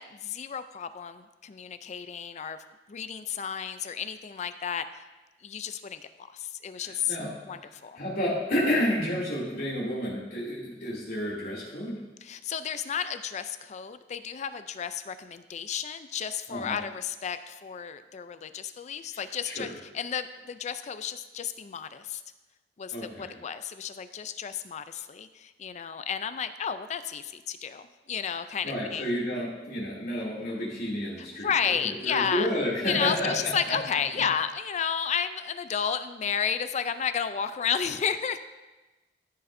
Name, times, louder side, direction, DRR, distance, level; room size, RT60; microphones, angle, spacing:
voice 1, 0.0-2.6 2.9-5.0 5.4-7.2 7.4-8.0 12.2-22.2 22.8-29.1 31.4-32.5 32.8-38.4, left 7 dB, 40° left, 11 dB, 0.4 m, -32 dB
voice 2, 6.8-7.3 8.0-12.0 16.5-16.8 19.4-19.7 22.9-23.3 28.6-31.5 31.8-33.3 33.7-33.8, equal, 60° left, -5 dB, 2.7 m, -30 dB
14.0 x 6.7 x 2.6 m, 1.1 s
head